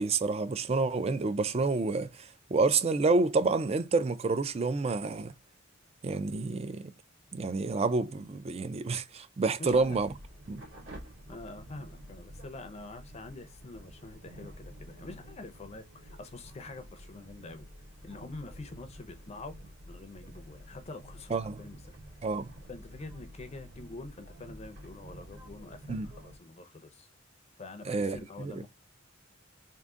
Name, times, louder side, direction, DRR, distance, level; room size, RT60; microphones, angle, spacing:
voice 1, 0.0-5.3 6.0-6.9 7.3-10.1 10.5-10.6 21.3-21.6 22.2-22.5 25.9-26.1 27.9-28.6, right 3 dB, 30° right, 0.4 m, -29 dB
voice 2, 9.6-10.0 11.3-17.7 18.0-19.6 19.8-21.8 22.7-27.1 27.6-28.7, left 2 dB, 30° left, 0.5 m, -46 dB
sound 1, 9.7-26.4, equal, 60° right, 2.2 m, -50 dB
3.7 x 2.6 x 3.6 m
head